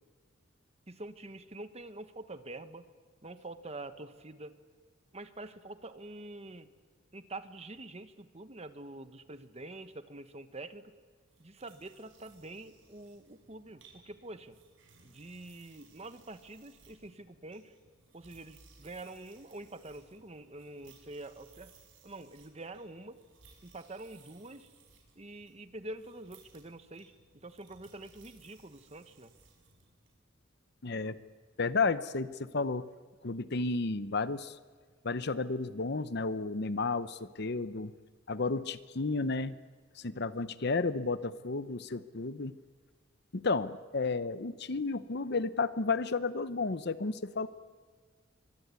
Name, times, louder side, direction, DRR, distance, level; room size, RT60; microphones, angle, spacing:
voice 1, 0.9-2.9 3.2-4.6 5.1-6.7 7.1-10.9 11.4-14.6 15.0-17.7 18.1-21.7 22.0-23.2 23.6-24.7 25.1-29.3, right 2 dB, 30° right, 10 dB, 1.3 m, -46 dB
sound 1, 11.3-30.1, right 4 dB, 65° right, 5.8 m, -62 dB
voice 2, 30.8-31.2 31.6-32.9 33.2-34.6 35.0-37.9 38.3-39.5 40.0-42.5 43.3-47.5, left 3 dB, 55° left, 14 dB, 0.9 m, -32 dB
24.5 x 24.0 x 9.6 m, 1.5 s
head